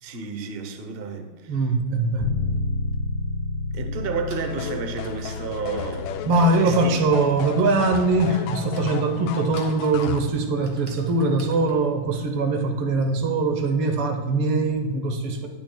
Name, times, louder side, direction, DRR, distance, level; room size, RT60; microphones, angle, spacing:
voice 1, 0.0-1.6 3.7-6.2 6.4-6.9, right 5 dB, 55° right, 0.6 m, -32 dB
voice 2, 1.5-2.3 6.3-15.5, right 3 dB, 90° right, 2.0 m, -22 dB
Bass guitar, 2.2-11.9, left 3 dB, 35° left, 2.9 m, -33 dB
Typing, 2.9-3.0 4.0-13.1, right 2 dB, 40° right, 1.8 m, -49 dB
sound 1, 4.5-10.2, left 8 dB, 75° left, 1.3 m, -34 dB
19.0 x 7.1 x 2.3 m
omnidirectional pair, 2.4 m